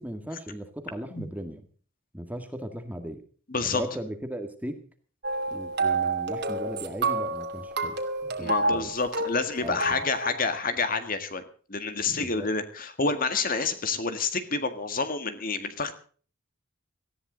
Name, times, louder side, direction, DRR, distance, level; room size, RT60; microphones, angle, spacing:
voice 1, 0.0-1.7 2.1-3.2 3.6-4.8 5.5-8.9 9.6-10.1 12.0-12.5, equal, 10° right, 7 dB, 1.8 m, -37 dB
voice 2, 3.5-3.8 8.4-11.4 11.7-16.0, left 4 dB, 45° left, 9 dB, 1.9 m, -28 dB
sound 1, 5.2-10.4, right 3 dB, 55° right, 2.4 m, -29 dB
18.5 x 14.5 x 4.0 m, 0.42 s
head